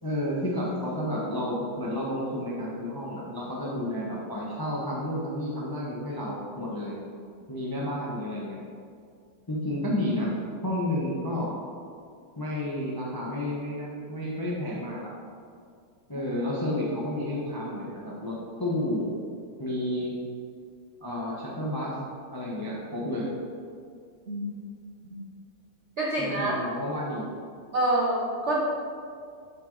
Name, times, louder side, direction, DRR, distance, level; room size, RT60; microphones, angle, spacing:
voice 1, 0.0-7.0 7.5-8.6 9.5-10.4 10.6-11.5 12.4-15.1 16.1-19.2 19.6-20.2 21.0-21.9 22.3-23.3 26.2-27.3, left 1 dB, 25° left, -4 dB, 0.5 m, -31 dB
voice 2, 26.0-26.5 27.7-28.6, right 1 dB, 60° right, -4 dB, 0.7 m, -27 dB
7.4 x 6.0 x 3.9 m, 2.2 s
omnidirectional pair, 2.3 m